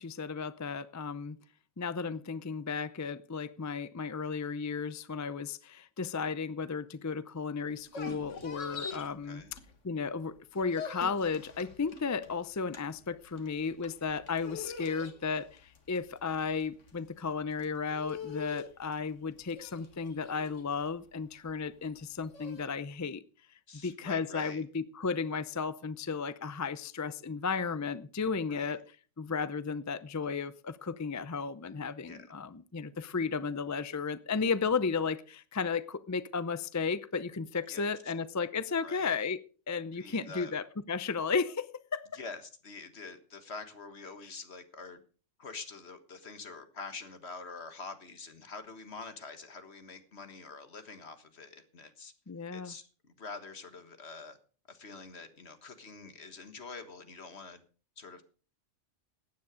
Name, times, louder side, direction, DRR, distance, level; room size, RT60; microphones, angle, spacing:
voice 1, 0.0-1.4 1.8-9.4 9.8-23.2 23.8-28.8 29.2-39.4 39.7-42.1 52.3-52.7, left 5 dB, 25° left, 0.3 m, -34 dB
sound 1, 7.7-10.1 10.4-22.7, left 5 dB, 90° left, 1.9 m, -45 dB
voice 2, 9.0-9.5 23.7-24.6 28.5-28.8 32.0-32.3 37.7-37.9 38.8-39.1 39.9-40.5 42.1-45.0 45.4-52.1 52.5-54.4 54.7-57.6 58.0-58.2, left 4 dB, 60° left, 1.8 m, -46 dB
14.5 x 9.7 x 5.0 m
omnidirectional pair, 1.2 m